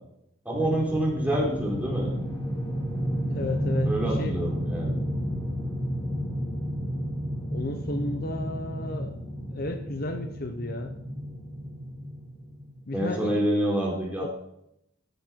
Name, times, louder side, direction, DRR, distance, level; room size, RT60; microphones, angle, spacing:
voice 1, 0.4-2.1 3.9-4.9 12.9-14.3, right 1 dB, 5° right, -3 dB, 4.2 m, -27 dB
sound 1, 0.5-12.8, equal, 20° left, 2.4 m, -31 dB
voice 2, 3.0-4.4 7.5-9.2 9.5-11.0 12.9-13.4 14.2-14.3, left 2 dB, 45° left, 7 dB, 0.9 m, -33 dB
13.5 x 9.4 x 4.6 m, 0.78 s
head